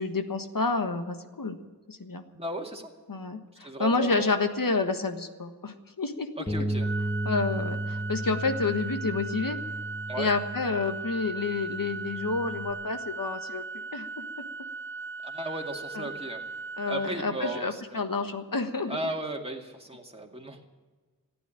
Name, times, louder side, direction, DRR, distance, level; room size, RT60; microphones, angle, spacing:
voice 1, 0.0-1.6 1.9-2.2 3.1-6.3 7.2-9.6 10.2-14.2 15.9-16.0 16.8-19.0, left 4 dB, 65° left, 7 dB, 1.5 m, -29 dB
voice 2, 2.3-2.9 3.6-4.4 6.4-6.9 10.1-10.3 15.2-16.4 16.9-18.0 18.9-20.6, right 1 dB, 15° right, 1 dB, 2.2 m, -35 dB
Bass guitar, 6.5-12.7, right 1 dB, 15° left, 1.9 m, -34 dB
Organ, 6.8-17.9, right 4 dB, 35° right, 0.4 m, -38 dB
15.0 x 9.6 x 10.0 m, 1.4 s
wide cardioid pair, 55°, 36 cm